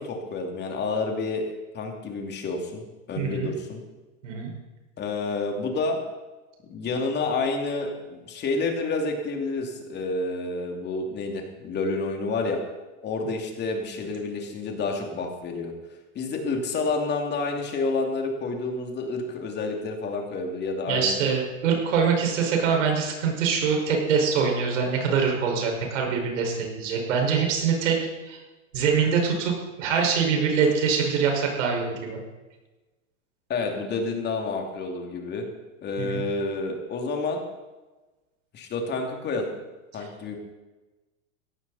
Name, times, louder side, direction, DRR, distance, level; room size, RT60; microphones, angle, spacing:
voice 1, 0.0-1.4 1.7-3.8 5.0-6.0 6.7-12.6 13.0-15.7 16.1-21.2 33.5-35.5 35.8-37.4 38.5-39.5 39.9-40.4, left 3 dB, 25° left, 2 dB, 2.8 m, -29 dB
voice 2, 3.2-3.5 4.2-4.5 20.9-28.0 28.3-28.4 28.7-29.5 29.8-32.2 36.0-36.2, right 6 dB, 70° right, 1 dB, 5.5 m, -24 dB
17.0 x 14.0 x 4.2 m, 1.2 s
supercardioid pair, 135°, 39 cm